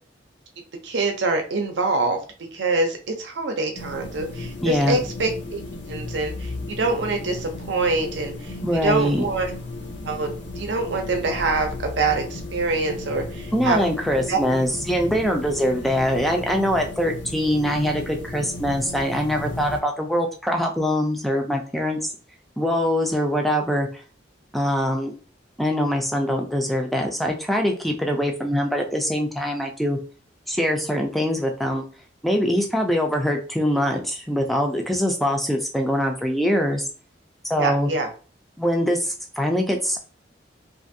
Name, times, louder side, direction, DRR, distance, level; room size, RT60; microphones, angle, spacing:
voice 1, 0.8-2.2 2.5-5.6 5.9-9.5 10.0-10.3 10.6-13.8 14.3-14.4 37.6-38.1, right 3 dB, 75° right, 4 dB, 0.6 m, -25 dB
sound 1, 3.7-19.8, left 2 dB, 75° left, 0.6 m, -35 dB
voice 2, 4.6-5.0 8.6-9.2 13.5-22.0 22.6-23.9 24.5-25.2 25.6-30.0 30.5-31.8 32.2-36.9 37.5-37.9 38.6-40.0, equal, ahead, 2 dB, 0.3 m, -23 dB
2.5 x 2.5 x 2.6 m, 0.38 s
head